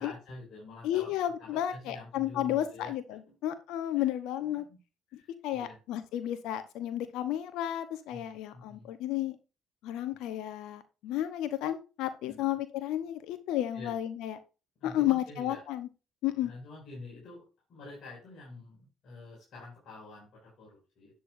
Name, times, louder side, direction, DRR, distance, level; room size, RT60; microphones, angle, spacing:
voice 1, 0.0-1.1 1.4-2.9 3.3-3.4 4.0-4.1 4.7-4.8 5.1-5.8 8.1-8.9 12.2-12.5 13.7-13.9 14.8-15.6 16.4-21.2, left 3 dB, 60° left, -5 dB, 6.1 m, -47 dB
voice 2, 0.8-4.6 5.1-9.4 9.8-14.4 14.8-15.9 16.2-16.5, left 12 dB, 75° left, 11 dB, 0.9 m, -32 dB
9.9 x 8.7 x 2.6 m, 0.31 s
supercardioid pair, 65°, 0 cm